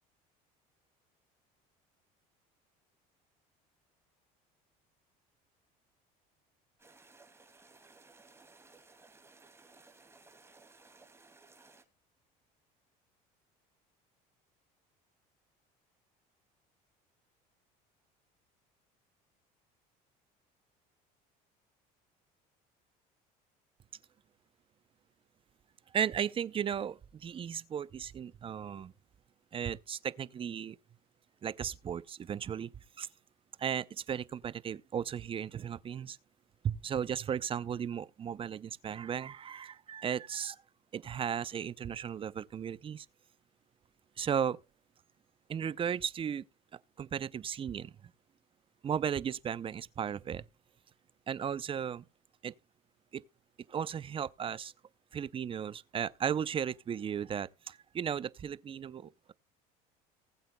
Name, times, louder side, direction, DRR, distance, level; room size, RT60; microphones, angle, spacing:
sound 1, 6.8-11.8, right 3 dB, 15° right, 2.3 m, -59 dB
voice 1, 25.9-28.9 29.5-30.8 31.4-32.7 33.0-33.1 33.6-36.2 36.6-40.6 40.9-43.1 44.2-44.6 45.5-46.4 47.0-48.1 48.8-50.5 51.3-52.0 52.4-52.5 53.1-53.2 53.7-54.7 55.1-59.3, right 8 dB, 30° right, 0.5 m, -35 dB
19.5 x 7.9 x 2.2 m
supercardioid pair, 100°, 18 cm